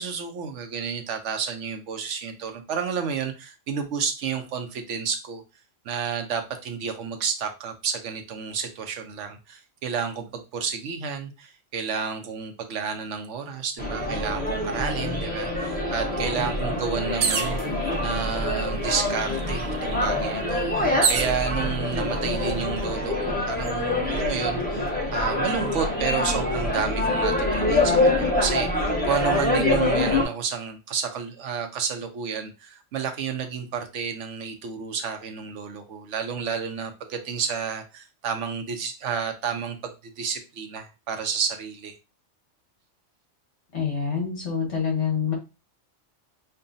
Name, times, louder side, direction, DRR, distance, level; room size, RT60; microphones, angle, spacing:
voice 1, 0.0-5.4 5.8-17.6 18.0-39.8 40.2-41.9, right 6 dB, 75° right, 6 dB, 1.0 m, -31 dB
sound 1, 13.8-30.2, left 2 dB, 10° left, 0.8 m, -25 dB
sound 2, 17.2-17.6 18.6-18.7 19.0-21.4 22.1-22.6, right 5 dB, 55° right, 0.6 m, -27 dB
voice 2, 43.7-45.3, left 6 dB, 65° left, -1 dB, 1.9 m, -26 dB
5.4 x 2.3 x 2.6 m, 0.28 s
omnidirectional pair, 1.3 m